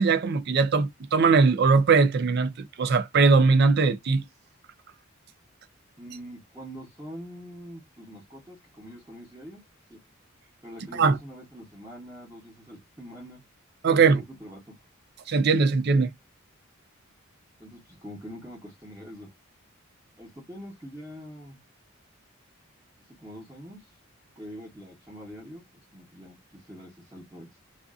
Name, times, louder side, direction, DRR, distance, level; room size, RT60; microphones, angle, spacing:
voice 1, 0.0-4.2 10.9-11.2 13.8-14.2 15.3-16.1, right 4 dB, 50° right, 0.4 m, -20 dB
voice 2, 6.0-9.6 9.9-10.0 10.6-13.4 13.9-14.8 17.6-19.3 20.2-21.6 23.2-23.9 24.4-27.6, equal, 15° right, 0.9 m, -44 dB
2.5 x 2.3 x 2.3 m
head